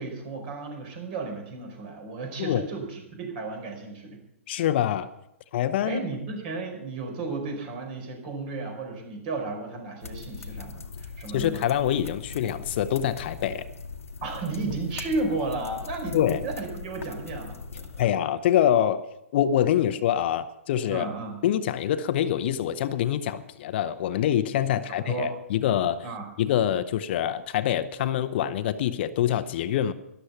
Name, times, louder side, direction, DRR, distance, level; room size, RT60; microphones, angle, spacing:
voice 1, 0.0-4.2 5.8-11.7 14.2-18.1 20.9-21.4 24.6-25.3 26.0-26.3, right 3 dB, 45° right, 3 dB, 4.8 m, -33 dB
voice 2, 4.5-5.1 5.5-6.0 11.3-13.6 16.1-16.4 18.0-19.1 19.3-21.1 21.4-26.1 26.4-29.9, left 10 dB, 50° left, 12 dB, 0.8 m, -25 dB
sound 1, 10.0-18.0, left 4 dB, 80° left, 1.2 m, -40 dB
13.0 x 11.5 x 5.8 m, 0.83 s
hypercardioid pair, 120°, 7 cm